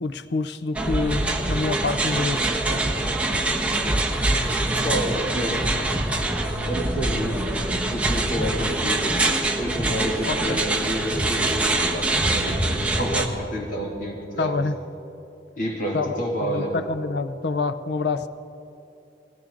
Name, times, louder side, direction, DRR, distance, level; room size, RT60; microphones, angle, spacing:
voice 1, 0.0-2.9 10.3-10.6 14.4-14.8 15.9-18.3, left 3 dB, 70° left, 12 dB, 0.6 m, -27 dB
sound 1, 0.7-13.3, right 2 dB, 5° right, 1.1 m, -24 dB
voice 2, 4.8-5.6 6.6-7.4 7.9-9.0 9.6-14.6 15.6-16.8, equal, 45° left, -2 dB, 2.6 m, -29 dB
20.0 x 18.0 x 3.9 m, 2.9 s
head